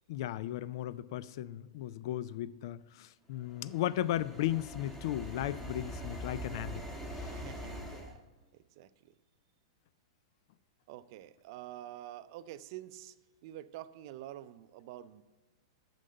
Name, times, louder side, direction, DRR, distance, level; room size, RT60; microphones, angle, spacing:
voice 1, 0.1-6.8 7.2-7.3, left 13 dB, 60° left, 0.3 m, -36 dB
sound 1, 3.5-8.1, equal, 5° left, 1.4 m, -43 dB
voice 2, 7.3-8.2 8.5-9.2 10.9-13.2 13.4-15.2, right 13 dB, 55° right, 0.5 m, -47 dB
6.6 x 6.3 x 7.6 m
hypercardioid pair, 120°, 3 cm